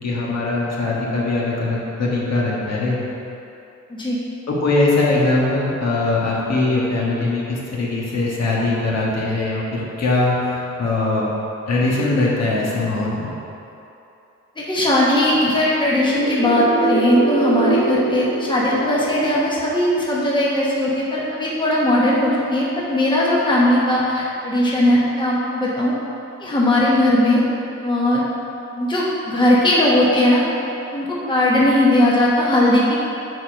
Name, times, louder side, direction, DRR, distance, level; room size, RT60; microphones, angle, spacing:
voice 1, 0.0-3.0 4.5-11.3 11.7-13.3, left 2 dB, 60° left, -5 dB, 1.5 m, -21 dB
voice 2, 14.6-25.9 26.4-27.4 27.8-28.2 28.7-30.5 30.9-33.0, left 1 dB, 15° left, -6 dB, 1.1 m, -18 dB
sound 1, 16.0-19.8, right 3 dB, 50° right, 1.1 m, -23 dB
7.7 x 4.1 x 5.1 m, 2.9 s
cardioid pair, 120°, 30 cm